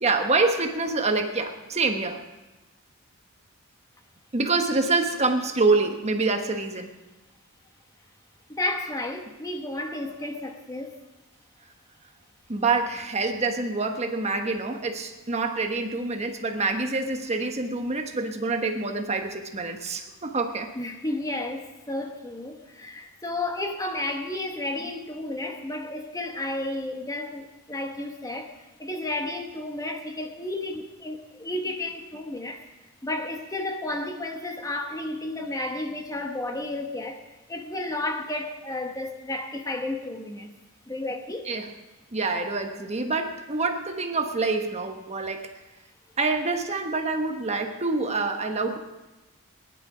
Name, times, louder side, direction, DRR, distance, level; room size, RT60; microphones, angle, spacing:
voice 1, 0.0-2.2 4.3-6.9 12.5-20.7 41.5-41.7 42.1-45.5 46.2-48.8, right 3 dB, 30° right, 1.1 m, -26 dB
voice 2, 8.5-11.0 20.7-32.6 33.0-37.2 37.5-40.5 40.9-41.5, left 2 dB, 15° left, 1.2 m, -32 dB
19.0 x 11.0 x 5.0 m
head